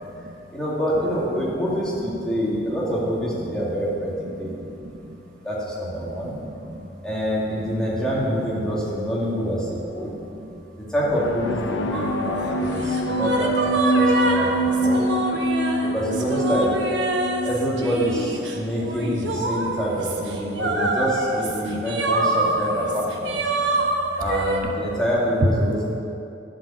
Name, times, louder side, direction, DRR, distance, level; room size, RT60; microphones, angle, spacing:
voice 1, 0.5-4.1 4.4-4.7 5.4-6.4 7.0-10.1 10.9-14.5 14.8-15.0 15.8-16.8 17.4-23.4 24.2-26.0, equal, 5° left, -7 dB, 2.3 m, -26 dB
voice 2, 1.4-1.7 4.4-5.2 6.0-6.9 10.1-10.6 11.7-11.8 12.2-12.6 21.6-21.8 23.5-23.9, right 1 dB, 50° right, 1 dB, 1.0 m, -40 dB
sound 1, 11.1-18.6, right 1 dB, 85° left, 0.8 m, -25 dB
sound 2, 11.9-24.6, right 2 dB, 80° right, 1.2 m, -26 dB
11.5 x 5.2 x 8.5 m, 2.8 s
head